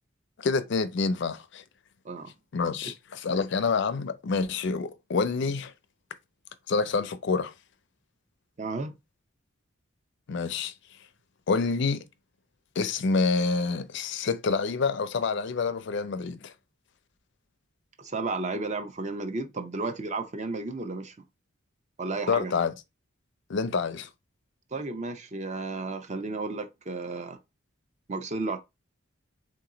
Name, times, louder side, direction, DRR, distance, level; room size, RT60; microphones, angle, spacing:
voice 1, 0.4-1.6 2.5-5.7 6.7-7.5 10.3-10.7 11.5-12.0 12.8-16.5 22.3-22.7 23.5-24.1, left 4 dB, 60° left, 0.4 m, -27 dB
voice 2, 8.6-9.0 18.0-21.3 22.0-22.5 24.7-27.4 28.1-28.6, right 3 dB, 35° right, 0.6 m, -33 dB
3.7 x 2.9 x 3.8 m
head